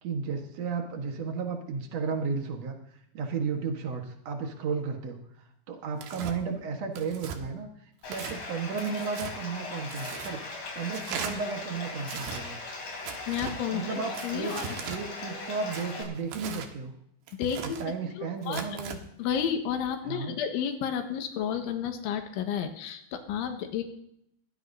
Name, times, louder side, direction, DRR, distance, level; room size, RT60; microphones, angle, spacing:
voice 1, 0.0-2.8 3.1-7.7 8.0-10.4 10.7-12.6 13.7-14.5 14.9-16.9 17.6-19.0 20.0-20.3, right 5 dB, 85° right, 3 dB, 1.4 m, -33 dB
Tearing, 6.0-6.4 7.0-7.4 8.0-8.4 8.8-9.3 9.9-10.3 10.9-11.3 12.0-12.4 13.1-13.6 14.1-15.0 15.7-16.7 17.3-17.9 18.4-19.0, right 7 dB, 70° right, 3.3 m, -38 dB
Bathtub (filling or washing), 8.0-16.0, left 3 dB, 50° left, 5.6 m, -39 dB
voice 2, 13.3-14.6 17.4-17.8 18.2-18.8 19.2-23.8, left 8 dB, 85° left, 5 dB, 3.9 m, -31 dB
22.0 x 16.5 x 2.7 m, 0.76 s
omnidirectional pair, 5.3 m